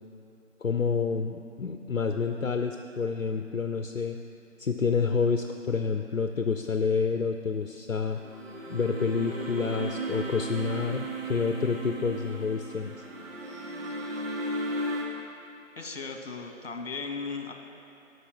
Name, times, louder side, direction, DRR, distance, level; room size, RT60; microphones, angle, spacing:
voice 1, 0.6-4.2 4.6-8.2 8.7-12.9, left 5 dB, 70° left, 6 dB, 0.7 m, -28 dB
sound 1, 8.1-15.0, right 1 dB, 75° right, 2.9 m, -35 dB
voice 2, 15.8-17.5, left 4 dB, 50° left, 3 dB, 1.6 m, -36 dB
13.0 x 5.8 x 7.4 m, 2.6 s
figure-of-eight pair, 155°, 40 cm